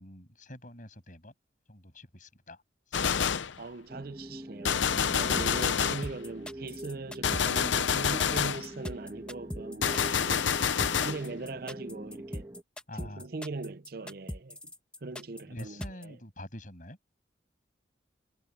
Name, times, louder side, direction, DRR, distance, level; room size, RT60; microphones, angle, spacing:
voice 1, 0.0-1.3 1.7-2.6 2.9-3.0 12.9-13.3 15.5-17.0, left 1 dB, 45° left, 7.9 m, -46 dB
Gunshot gunfire, 2.9-3.6 4.6-6.1 7.2-8.7 9.8-11.2, left 7 dB, 80° left, 0.7 m, -27 dB
voice 2, 3.6-10.5 11.0-12.5 12.9-14.6 15.0-16.2, right 3 dB, 50° right, 0.6 m, -40 dB
sound 1, 3.9-12.6, right 1 dB, 20° right, 1.3 m, -44 dB
sound 2, 5.2-16.0, equal, 5° left, 1.4 m, -40 dB
head